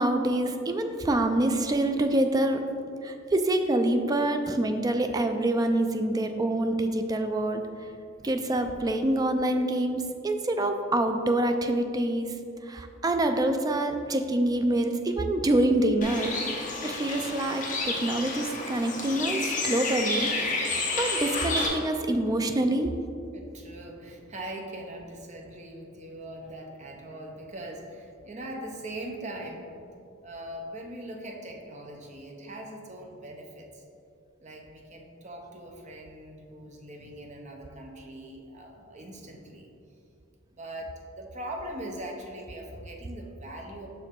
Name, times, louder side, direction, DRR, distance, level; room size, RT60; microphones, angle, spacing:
voice 1, 0.0-2.6 3.0-7.6 8.2-12.3 12.7-16.4 16.8-20.6 20.9-22.9, right 1 dB, 20° right, 6 dB, 0.3 m, -26 dB
voice 2, 7.6-8.2 8.7-8.8 17.1-17.4 23.3-29.8 30.2-33.8 34.4-39.7 40.5-43.9, right 1 dB, 35° right, 1 dB, 0.7 m, -41 dB
Bird, 16.0-21.7, left 3 dB, 40° left, 1.0 m, -30 dB
6.2 x 4.6 x 3.6 m, 2.5 s
head